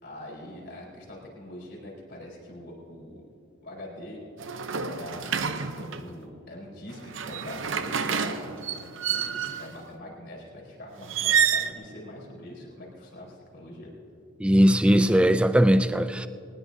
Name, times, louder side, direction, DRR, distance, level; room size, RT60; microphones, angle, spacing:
voice 1, 0.0-3.2 3.6-4.2 4.5-8.5 9.1-13.9, left 1 dB, 55° left, -3 dB, 4.4 m, -43 dB
sound 1, 4.4-6.1 6.9-9.8 11.0-11.7, right 7 dB, 70° right, 0.8 m, -28 dB
voice 2, 14.4-16.3, equal, 5° right, 11 dB, 0.4 m, -19 dB
22.0 x 19.5 x 2.8 m, 2.6 s
head